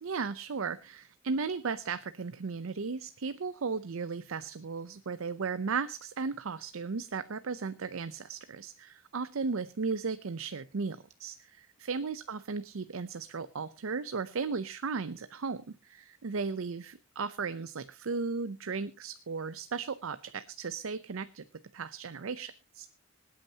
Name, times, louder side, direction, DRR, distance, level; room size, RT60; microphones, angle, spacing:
voice 1, 0.0-21.4 21.7-22.9, right 4 dB, 75° right, 13 dB, 0.6 m, -36 dB
25.0 x 8.7 x 2.8 m, 0.27 s
head